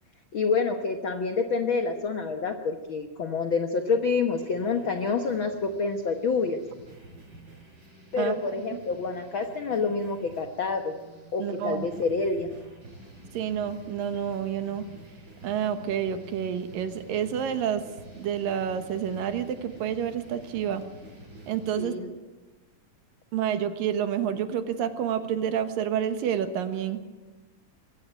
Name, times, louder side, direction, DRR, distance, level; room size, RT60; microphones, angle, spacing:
voice 1, 0.3-6.6 8.1-10.9 11.3-12.5 21.8-22.1, left 4 dB, 70° left, 6 dB, 1.1 m, -27 dB
sound 1, 4.3-21.8, right 1 dB, 30° right, 6.3 m, -48 dB
voice 2, 11.4-11.9 13.3-14.9 15.4-17.9 18.1-20.8 21.5-21.9 23.3-27.1, right 9 dB, 75° right, 9 dB, 3.0 m, -29 dB
22.5 x 16.5 x 9.1 m, 1.2 s
omnidirectional pair, 4.0 m